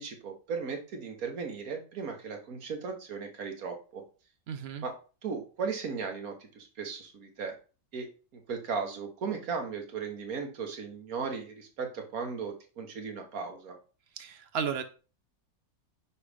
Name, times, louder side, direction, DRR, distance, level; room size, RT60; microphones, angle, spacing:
voice 1, 0.0-4.0 4.8-4.9 5.2-7.5 7.9-13.8, right 5 dB, 75° right, 4 dB, 1.6 m, -36 dB
voice 2, 4.5-4.9 14.2-14.8, right 7 dB, 55° right, 10 dB, 0.8 m, -34 dB
5.5 x 4.9 x 3.4 m, 0.35 s
omnidirectional pair, 1.5 m